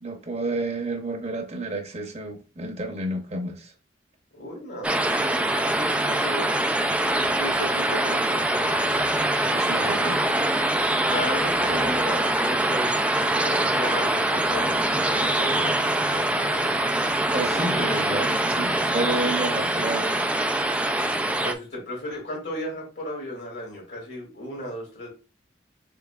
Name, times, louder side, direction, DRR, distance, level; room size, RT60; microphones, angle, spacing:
voice 1, 0.0-3.7 9.5-10.2 17.3-20.2, right 2 dB, 35° right, 0.8 m, -30 dB
voice 2, 4.3-6.5 7.4-9.1 9.4-10.1 11.0-12.9 13.4-16.7 17.5-18.2 18.8-19.4 21.4-25.1, left 1 dB, 60° left, 2.8 m, -35 dB
sound 1, 4.8-21.5, right 1 dB, 5° right, 0.3 m, -24 dB
6.8 x 3.1 x 2.4 m
head